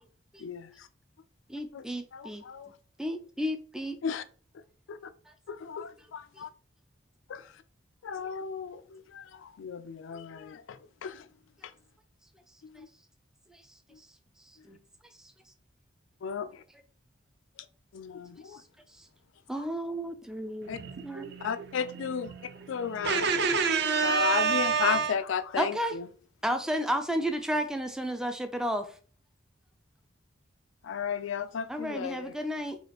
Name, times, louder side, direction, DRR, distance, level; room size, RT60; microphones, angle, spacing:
voice 1, 0.4-0.9 1.7-1.9 2.1-2.7 4.0-4.2 4.9-5.0 5.5-6.5 7.3-7.5 8.0-11.3 12.8-12.9 16.2-16.6 17.9-18.6 20.7-20.8 21.4-22.3 22.7-23.3 24.0-26.1 30.8-32.4, left 7 dB, 70° left, 0.4 m, -34 dB
voice 2, 1.5-2.4 3.0-4.0 13.5-13.6 14.7-14.8 19.0-19.1 19.5-21.3 25.6-26.0 26.4-28.9 31.7-32.8, equal, 5° right, 0.3 m, -32 dB
voice 3, 20.6-25.1, right 5 dB, 55° right, 0.7 m, -29 dB
4.9 x 2.5 x 2.9 m
head